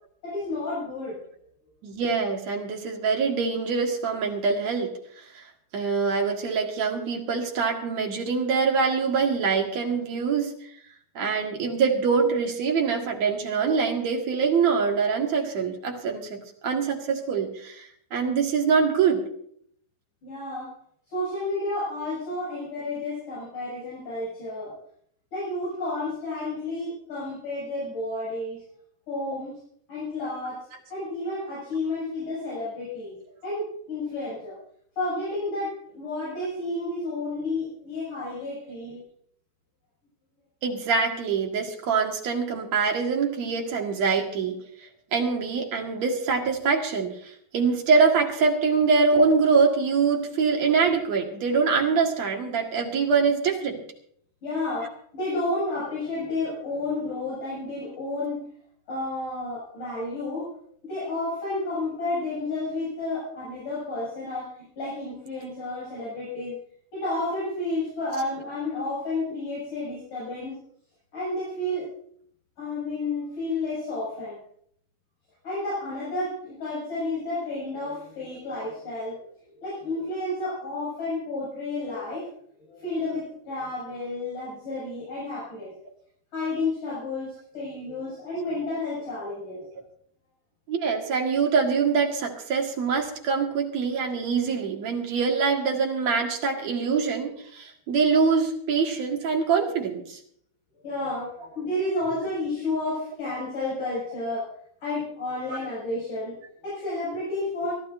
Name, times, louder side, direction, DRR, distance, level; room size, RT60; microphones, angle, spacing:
voice 1, 0.2-1.2 20.2-20.7 21.1-24.7 25.3-28.6 29.1-29.6 29.9-33.2 33.4-34.6 35.0-39.0 54.4-58.4 58.9-66.6 66.9-70.6 71.1-71.9 72.6-74.4 75.4-79.3 79.6-82.3 82.7-85.7 86.3-89.6 100.8-104.5 104.8-107.7, left 2 dB, 55° left, -8 dB, 8.5 m, -31 dB
voice 2, 1.8-5.4 5.7-10.5 11.2-19.3 40.6-44.6 45.1-47.2 47.5-53.8 90.7-100.2, right 5 dB, 50° right, 1 dB, 2.6 m, -24 dB
24.5 x 13.5 x 2.7 m, 0.64 s
omnidirectional pair, 4.7 m